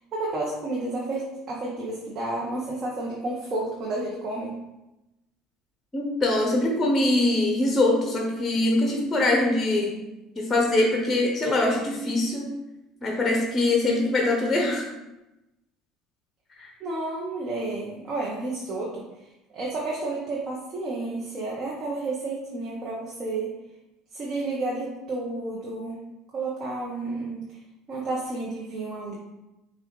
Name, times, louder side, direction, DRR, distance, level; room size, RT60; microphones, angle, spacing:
voice 1, 0.1-4.5 16.8-19.0 19.5-23.5 24.1-26.0 26.3-27.5 27.9-29.1, right 2 dB, 45° right, -3 dB, 0.8 m, -31 dB
voice 2, 5.9-9.9 10.4-12.4 13.0-14.8 16.6-16.7, left 2 dB, 20° left, 0 dB, 0.8 m, -23 dB
5.4 x 2.4 x 3.1 m, 0.97 s
supercardioid pair, 85°, 0 cm